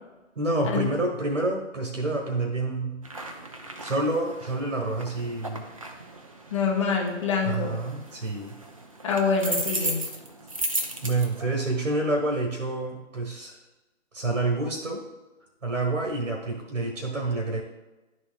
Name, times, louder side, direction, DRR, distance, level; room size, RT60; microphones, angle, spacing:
voice 1, 0.3-3.0 3.8-5.6 7.4-8.6 11.0-13.6 14.1-15.0 15.6-17.6, right 2 dB, 80° right, 0 dB, 1.4 m, -28 dB
sound 1, 3.0-11.9, right 1 dB, 30° right, 0.5 m, -36 dB
voice 2, 6.5-7.8 9.0-10.0, left 5 dB, 25° left, -1 dB, 0.9 m, -25 dB
11.0 x 4.4 x 2.4 m, 1.1 s
figure-of-eight pair, 150°, 38 cm